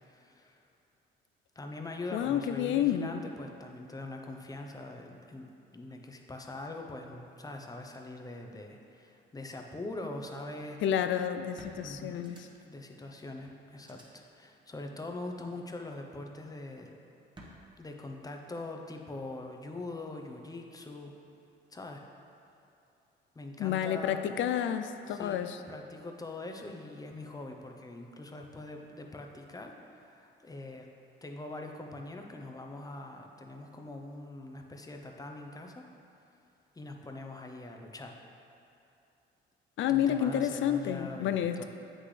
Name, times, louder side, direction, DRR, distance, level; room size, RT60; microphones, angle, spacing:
voice 1, 0.1-0.6 1.6-5.5 5.7-10.8 11.8-12.3 12.6-17.0 17.8-21.1 21.7-22.0 23.3-24.2 25.1-25.4 25.7-29.7 30.0-30.9 31.2-35.8 36.7-38.2 39.9-41.6, left 2 dB, 20° left, 2 dB, 0.7 m, -43 dB
voice 2, 2.1-3.2 10.8-12.5 23.6-25.6 39.8-41.6, left 10 dB, 75° left, 9 dB, 0.4 m, -30 dB
sound 1, 11.6-12.8 13.2-13.3 13.8-14.0 15.4-15.8 17.3-17.5, right 1 dB, 25° right, 1.2 m, -52 dB
7.8 x 6.0 x 3.2 m, 2.7 s
cardioid pair, 90°, 20 cm